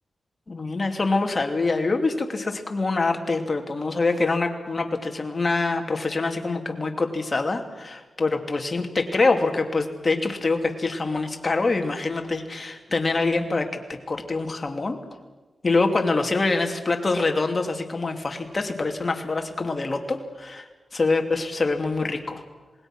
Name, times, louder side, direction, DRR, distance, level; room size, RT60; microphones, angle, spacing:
voice 1, 0.5-15.0 15.6-20.6 20.9-22.4, left 3 dB, 40° left, 4 dB, 2.9 m, -25 dB
27.0 x 20.0 x 6.3 m, 1.3 s
cardioid pair, 75°, 0 cm